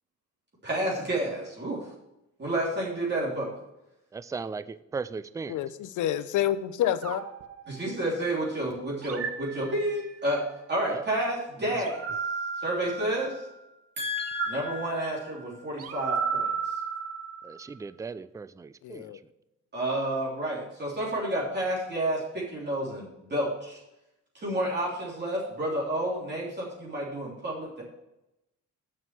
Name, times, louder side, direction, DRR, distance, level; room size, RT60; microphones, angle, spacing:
voice 1, 0.6-1.9 2.4-3.5 7.7-12.1 12.6-13.4 14.0-16.5 19.7-23.8 24.3-27.8, right 1 dB, 35° right, -5 dB, 3.3 m, -30 dB
voice 2, 4.1-5.6 10.9-11.0 11.6-11.8 17.4-19.1, right 4 dB, 10° right, 15 dB, 0.3 m, -37 dB
voice 3, 5.5-7.2 18.8-19.1, left 11 dB, 80° left, 12 dB, 0.7 m, -28 dB
sound 1, 7.0-8.4 9.0-10.3 11.8-13.5 14.2-17.7, right 6 dB, 50° right, 1.0 m, -34 dB
6.9 x 6.3 x 7.5 m, 0.91 s
cardioid pair, 90°, 30 cm